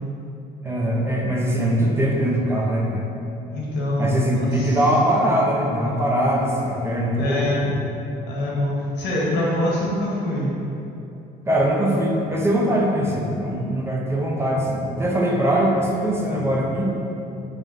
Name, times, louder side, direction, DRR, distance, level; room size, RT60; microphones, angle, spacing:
voice 1, 0.6-3.0 4.0-7.7 11.5-16.9, right 1 dB, 15° right, -3 dB, 0.5 m, -21 dB
voice 2, 3.5-4.8 7.1-7.8 8.3-10.5, left 1 dB, 80° left, -5 dB, 1.0 m, -24 dB
5.1 x 2.5 x 2.4 m, 2.8 s
cardioid pair, 110°, 17 cm